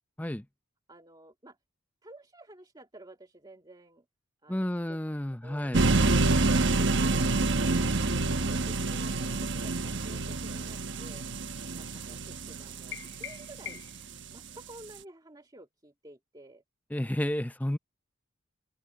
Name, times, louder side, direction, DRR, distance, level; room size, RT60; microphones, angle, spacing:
voice 1, 0.9-1.6 2.0-4.1 4.4-5.0 5.4-5.7 7.7-7.9 8.2-11.3 11.6-13.8 14.3-16.6, right 1 dB, 20° right, 2.5 m, -51 dB
voice 2, 4.5-5.8 16.9-17.8, left 1 dB, 10° left, 0.6 m, -31 dB
sound 1, 5.7-13.8, right 3 dB, 60° right, 1.2 m, -27 dB
sound 2, 12.9-14.1, left 10 dB, 65° left, 7.0 m, -43 dB
head